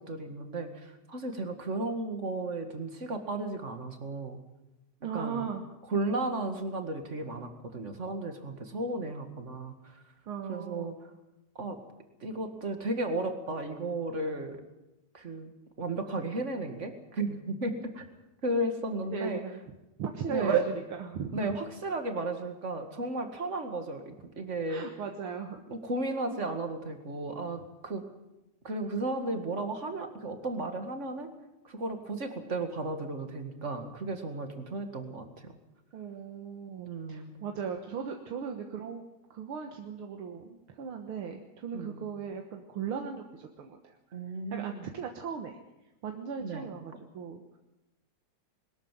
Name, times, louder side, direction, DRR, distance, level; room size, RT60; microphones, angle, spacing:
voice 1, 0.0-4.4 5.1-5.5 5.9-10.0 10.5-11.0 11.6-11.8 12.2-14.6 15.1-15.5 15.8-18.1 18.4-19.4 20.3-20.6 21.3-24.9 25.7-28.0 28.6-31.3 31.6-35.6 36.8-37.3 41.7-42.0 44.1-44.9 46.4-46.7, right 2 dB, 30° right, 6 dB, 1.9 m, -34 dB
voice 2, 5.0-5.6 10.3-10.9 19.1-19.6 20.0-21.5 24.7-25.6 35.9-39.0 39.3-44.0 44.5-45.6 46.0-47.6, right 7 dB, 55° right, 4 dB, 1.9 m, -36 dB
21.5 x 13.5 x 9.2 m, 0.97 s
omnidirectional pair, 3.3 m